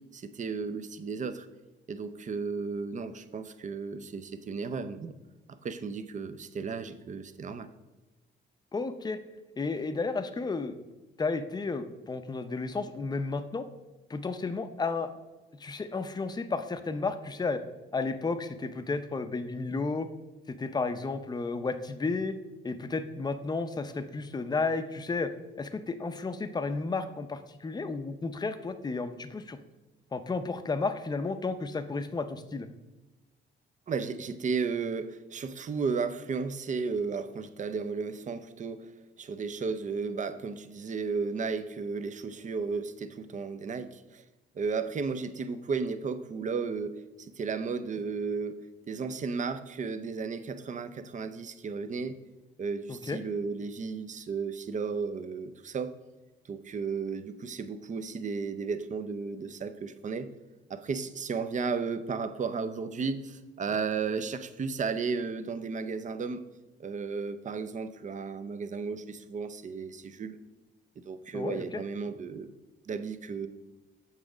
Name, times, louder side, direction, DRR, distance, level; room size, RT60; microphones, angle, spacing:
voice 1, 0.1-1.5 1.9-5.1 5.5-7.7 33.9-38.9 39.2-44.2 44.5-48.6 48.9-52.2 52.6-55.9 56.5-60.3 60.7-66.4 66.8-70.4 71.0-72.5 72.9-73.5, right 5 dB, 40° right, 11 dB, 0.6 m, -34 dB
voice 2, 8.7-9.2 9.6-10.7 11.2-13.7 14.1-15.1 15.6-17.6 17.9-20.1 20.5-22.4 22.6-25.3 25.6-29.6 30.1-32.7 52.9-53.2 71.3-71.8, left 4 dB, 20° left, 10 dB, 0.6 m, -32 dB
7.4 x 3.9 x 6.0 m, 1.1 s
cardioid pair, 90°, 20 cm